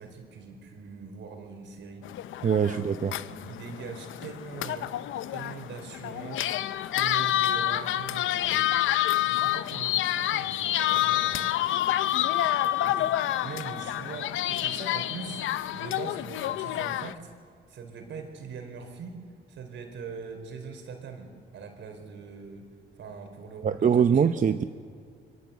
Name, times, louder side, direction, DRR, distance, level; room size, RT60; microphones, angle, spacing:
voice 1, 0.0-2.1 2.7-5.0 5.3-6.6 6.9-11.6 12.2-12.3 12.8-17.3 17.7-19.2 19.5-22.7 23.0-24.1, right 5 dB, 70° right, 5 dB, 4.5 m, -42 dB
sound 1, 2.0-17.1, left 13 dB, 80° left, 0.7 m, -28 dB
voice 2, 2.4-3.1 23.6-24.6, right 7 dB, 40° right, 8 dB, 0.8 m, -23 dB
24.0 x 23.0 x 8.3 m, 2.1 s
cardioid pair, 90°, 20 cm